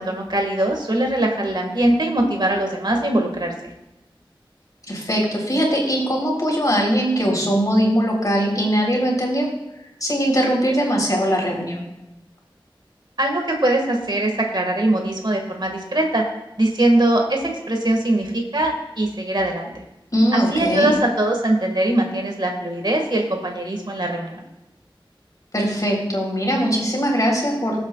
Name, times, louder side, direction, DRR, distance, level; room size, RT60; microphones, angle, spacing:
voice 1, 0.0-3.5 13.2-16.2 16.6-19.7 20.3-24.4, right 1 dB, 55° right, 2 dB, 1.9 m, -21 dB
voice 2, 4.9-9.5 10.0-11.9 20.1-20.9 25.5-27.8, equal, 40° left, -1 dB, 3.8 m, -20 dB
22.5 x 8.1 x 2.4 m, 0.96 s
wide cardioid pair, 50°, 9 cm